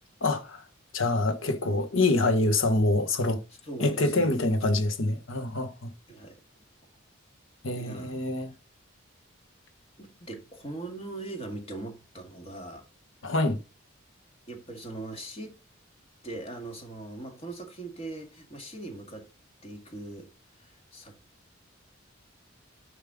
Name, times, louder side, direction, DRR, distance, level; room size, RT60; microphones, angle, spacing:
voice 1, 0.2-0.6 0.9-3.4 3.8-5.9 7.6-8.5 13.2-13.6, left 2 dB, 75° left, 1.4 m, -25 dB
voice 2, 3.6-4.4 6.1-6.4 7.7-8.2 10.0-12.9 14.5-15.5 16.2-19.3 19.6-20.3 20.6-21.1, right 2 dB, 30° left, 2.1 m, -40 dB
7.1 x 5.5 x 3.8 m
head